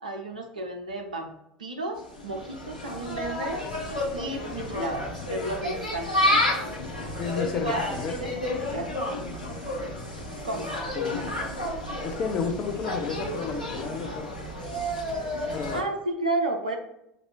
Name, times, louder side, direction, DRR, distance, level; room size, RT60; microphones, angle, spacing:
voice 1, 0.0-1.3 1.6-3.6 4.1-6.1 7.7-7.8 8.1-9.0 10.4-10.7 15.7-16.8, right 2 dB, 80° right, 4 dB, 0.5 m, -32 dB
Insect, 2.0-15.8, left 1 dB, 90° left, 0.9 m, -30 dB
voice 2, 7.2-8.3 10.9-11.2 12.0-14.3 15.5-15.8, left 5 dB, 40° left, 4 dB, 0.5 m, -32 dB
5.9 x 2.7 x 3.0 m, 0.84 s
figure-of-eight pair, 70°, 4 cm